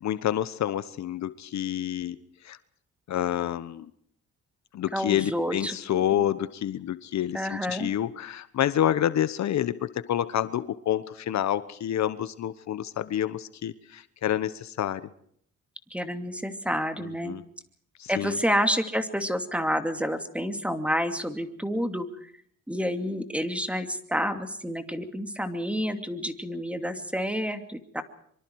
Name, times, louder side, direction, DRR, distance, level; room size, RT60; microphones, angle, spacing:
voice 1, 0.0-2.2 2.4-2.6 3.1-3.9 4.7-15.1 17.2-17.4 18.0-18.3, left 11 dB, 65° left, 14 dB, 1.1 m, -28 dB
voice 2, 4.9-6.2 7.3-7.9 15.9-17.3 18.1-22.3 22.7-28.0, equal, 5° right, 8 dB, 2.6 m, -29 dB
25.5 x 24.5 x 4.7 m, 0.64 s
cardioid pair, 90°, 30 cm